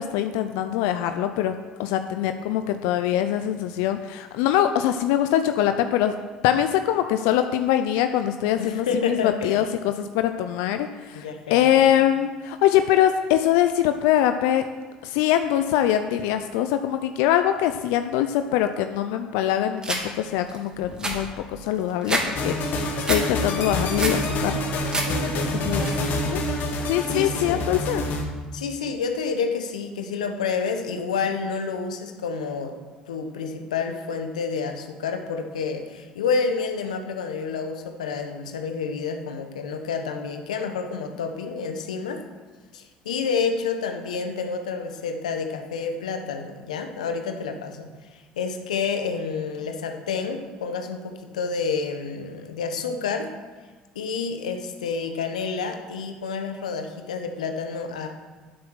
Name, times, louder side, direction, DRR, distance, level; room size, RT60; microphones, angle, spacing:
voice 1, 0.0-1.5 1.8-6.1 6.4-9.7 10.0-14.6 15.0-24.6 25.6-26.4 26.8-28.0, left 11 dB, 75° left, 8 dB, 0.5 m, -23 dB
voice 2, 8.6-9.6 11.1-11.8 24.9-25.5 27.1-27.7 28.5-32.7 33.1-42.2 42.7-53.3 53.9-58.1, left 5 dB, 90° left, 6 dB, 1.1 m, -29 dB
sound 1, 19.8-20.0 20.5-20.6 20.8-22.3 22.6-23.2 23.6-24.2 24.6-25.1 25.4-25.9, right 2 dB, 20° right, 2.8 m, -27 dB
sound 2, 22.4-28.2, left 1 dB, 55° left, 2.0 m, -27 dB
9.4 x 8.1 x 6.3 m, 1.4 s
hypercardioid pair, 65°, 4 cm